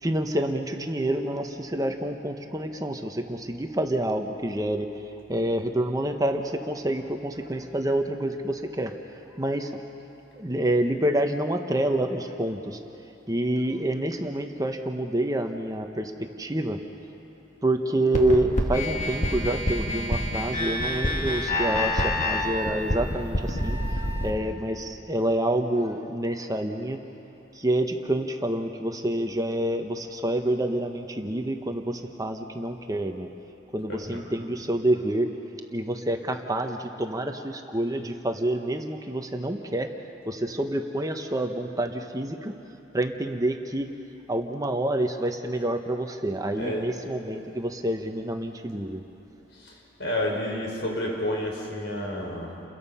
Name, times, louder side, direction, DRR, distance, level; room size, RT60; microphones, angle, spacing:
voice 1, 0.0-4.9 5.3-9.8 10.4-12.8 13.3-16.8 17.6-27.0 27.5-33.3 33.7-35.3 35.7-39.9 40.3-42.5 42.9-43.9 44.3-49.0, right 1 dB, 20° right, 5 dB, 1.1 m, -28 dB
sound 1, 18.1-24.3, left 1 dB, 40° left, 2.3 m, -27 dB
voice 2, 34.0-34.4 46.5-47.0 49.5-52.6, left 1 dB, 75° left, -1 dB, 5.1 m, -31 dB
29.5 x 21.5 x 5.7 m, 2.9 s
head